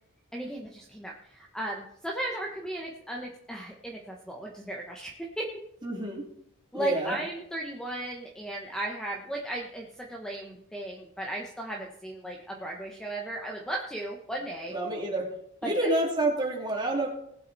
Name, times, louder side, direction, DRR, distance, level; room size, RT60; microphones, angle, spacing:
voice 1, 0.3-5.5 6.7-14.7 15.6-15.9, right 1 dB, 5° left, 0 dB, 1.2 m, -36 dB
voice 2, 5.8-6.3 6.7-7.2 14.7-15.3 15.6-17.1, right 1 dB, 20° right, -1 dB, 2.9 m, -28 dB
19.0 x 7.6 x 4.2 m, 0.74 s
head